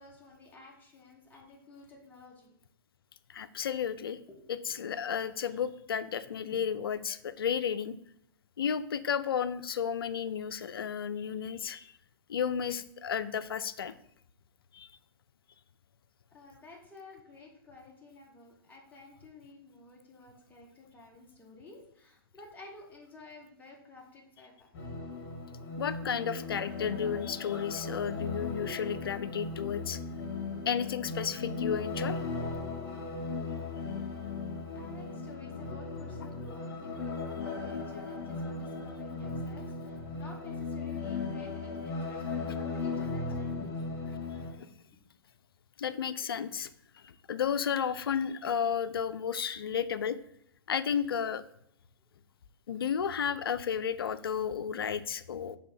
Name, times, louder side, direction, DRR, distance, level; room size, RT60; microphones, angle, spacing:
voice 1, 0.0-2.6 4.3-4.4 4.7-4.8 6.5-6.6 16.3-24.7 33.4-33.6 34.7-43.8, left 2 dB, 15° left, -2 dB, 1.4 m, -52 dB
voice 2, 3.3-4.2 4.5-8.0 8.6-11.9 12.3-13.9 14.7-14.9 25.8-30.0 30.7-32.2 44.5-44.7 45.8-46.7 47.0-50.2 50.7-51.4 52.7-55.6, left 7 dB, 75° left, 13 dB, 0.4 m, -33 dB
sound 1, 24.7-44.5, left 3 dB, 40° left, 2.0 m, -37 dB
5.0 x 3.5 x 5.6 m, 0.71 s
figure-of-eight pair, 110°, 12 cm